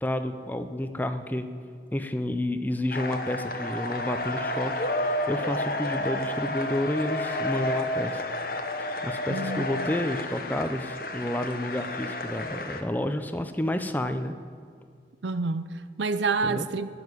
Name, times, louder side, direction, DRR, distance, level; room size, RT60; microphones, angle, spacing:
voice 1, 0.0-1.5 1.9-8.2 8.8-14.3 16.4-16.7, left 1 dB, 10° left, 0.6 m, -30 dB
sound 1, 2.9-12.8, left 1 dB, 50° left, 1.1 m, -31 dB
voice 2, 9.3-9.9 15.2-16.9, right 4 dB, 85° right, 0.6 m, -29 dB
16.0 x 7.1 x 9.8 m
head